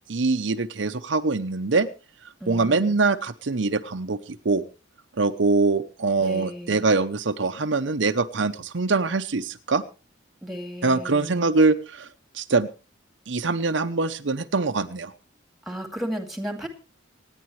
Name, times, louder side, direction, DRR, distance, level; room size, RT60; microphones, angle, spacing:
voice 1, 0.1-1.9 2.5-4.6 5.2-9.8 10.8-12.1 12.3-12.7 13.3-15.1, right 3 dB, 70° right, 8 dB, 0.8 m, -23 dB
voice 2, 2.4-3.0 6.2-6.9 10.4-11.5 15.7-16.7, equal, ahead, 5 dB, 2.4 m, -34 dB
26.5 x 10.0 x 3.2 m, 0.33 s
head